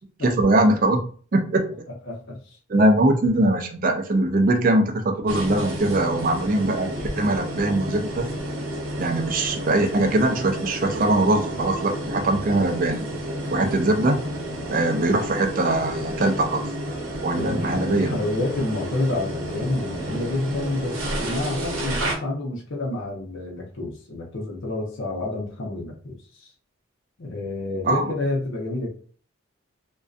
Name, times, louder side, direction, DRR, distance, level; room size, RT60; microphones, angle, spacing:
voice 1, 0.2-1.1 1.3-1.7 2.7-8.3 9.0-13.0 13.5-14.2 14.7-16.7 17.2-18.2 27.8-28.1, right 2 dB, 40° right, 4 dB, 0.4 m, -21 dB
voice 2, 2.1-2.6 17.3-26.5 27.2-28.9, left 2 dB, 65° left, -1 dB, 0.7 m, -29 dB
sound 1, 5.3-22.1, right 1 dB, 75° right, 0.7 m, -31 dB
2.5 x 2.2 x 2.4 m, 0.43 s
head